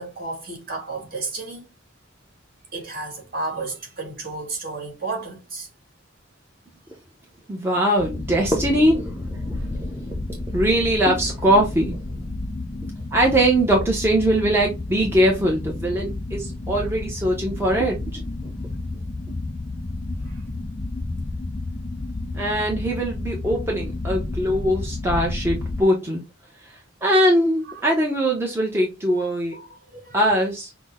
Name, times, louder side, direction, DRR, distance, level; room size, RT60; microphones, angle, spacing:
voice 1, 0.0-1.7 2.7-5.7 20.2-20.4 27.7-27.8 29.5-30.2, right 3 dB, 50° right, 1.9 m, -32 dB
voice 2, 7.5-12.3 12.8-18.5 22.3-26.2 26.6-26.7 27.0-29.5 30.1-30.7, right 1 dB, 15° right, 0.8 m, -22 dB
sound 1, 8.0-25.8, left 2 dB, 20° left, 0.3 m, -31 dB
5.9 x 2.1 x 3.6 m
head